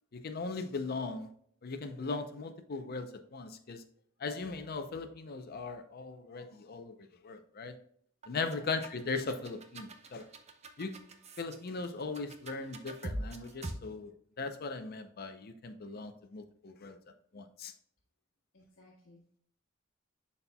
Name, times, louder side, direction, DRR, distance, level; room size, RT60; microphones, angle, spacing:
voice 1, 0.1-1.3 1.6-3.8 4.2-6.9 7.2-7.7 8.3-10.2 10.8-11.0 11.4-17.0 17.3-17.7, left 4 dB, 50° left, 0.6 m, -39 dB
sound 1, 8.2-13.7, right 1 dB, 35° right, 0.8 m, -43 dB
voice 2, 18.5-19.4, left 1 dB, 65° left, 1.4 m, -58 dB
11.0 x 4.2 x 2.2 m
head